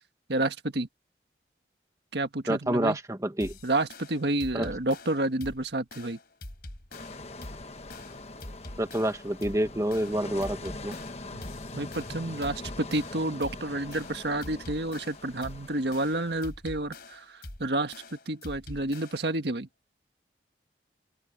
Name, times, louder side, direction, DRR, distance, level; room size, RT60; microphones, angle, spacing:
voice 1, 0.3-0.9 2.1-3.0 3.6-6.2 11.3-11.4 11.7-17.9 18.3-19.7, right 2 dB, 75° right, 1.5 m, -30 dB
voice 2, 2.5-3.5 4.5-4.7 8.8-10.9, right 1 dB, 20° right, 1.3 m, -28 dB
sound 1, 3.4-19.4, left 1 dB, 60° left, 3.5 m, -45 dB
sound 2, 6.9-16.5, left 2 dB, 35° left, 1.2 m, -43 dB
head